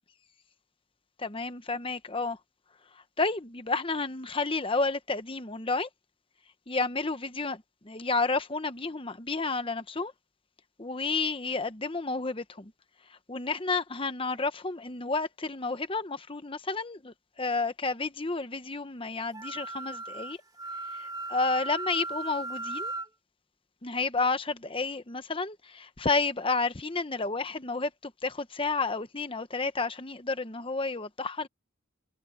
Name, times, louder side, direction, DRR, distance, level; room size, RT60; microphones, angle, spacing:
voice 1, 1.2-2.4 3.2-5.9 6.7-10.1 10.8-12.7 13.1-20.4 20.9-22.9 23.8-31.5, left 3 dB, 25° left, 1.0 m, -31 dB
Wind instrument woodwind instrument, 19.3-23.1, right 2 dB, 20° right, 2.7 m, -37 dB
head